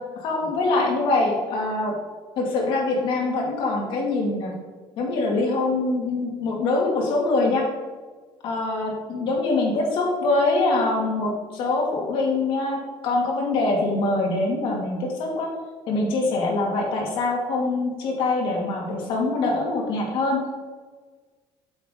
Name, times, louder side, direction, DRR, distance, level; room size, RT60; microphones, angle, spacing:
voice 1, 0.2-2.0 2.4-4.5 5.0-7.7 8.4-15.5 15.9-20.4, left 2 dB, 60° left, -1 dB, 2.4 m, -24 dB
8.6 x 7.2 x 3.9 m, 1.4 s
cardioid pair, 170°, 10 cm